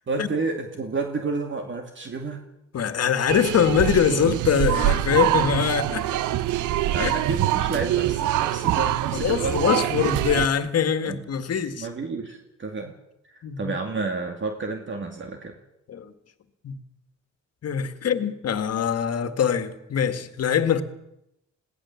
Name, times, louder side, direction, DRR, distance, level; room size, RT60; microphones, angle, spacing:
voice 1, 0.1-2.4 6.7-9.8 11.0-11.2 11.8-12.9 13.2-15.6, right 3 dB, 40° right, 2.4 m, -30 dB
voice 2, 2.7-6.1 7.0-7.2 9.1-11.9 13.4-13.7 15.9-16.1 16.6-16.8 17.6-20.8, left 8 dB, 55° left, 2.0 m, -23 dB
sound 1, 3.3-10.5, right 13 dB, 80° right, 0.8 m, -24 dB
21.0 x 17.0 x 7.3 m
cardioid pair, 90°, 30 cm